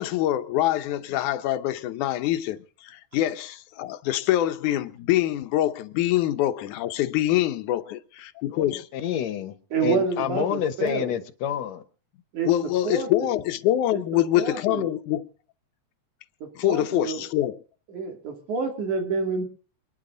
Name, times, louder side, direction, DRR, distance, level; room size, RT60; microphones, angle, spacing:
voice 1, 0.0-8.9 12.5-15.3 16.6-17.6, left 13 dB, 90° left, 2.3 m, -25 dB
voice 2, 8.5-9.6 9.8-11.8, left 9 dB, 70° left, 2.1 m, -28 dB
voice 3, 9.7-11.1 12.3-12.5 12.8-13.3 14.4-14.9 16.4-17.2 17.9-19.4, right 5 dB, 85° right, 4.1 m, -28 dB
27.5 x 10.5 x 3.9 m
omnidirectional pair, 3.4 m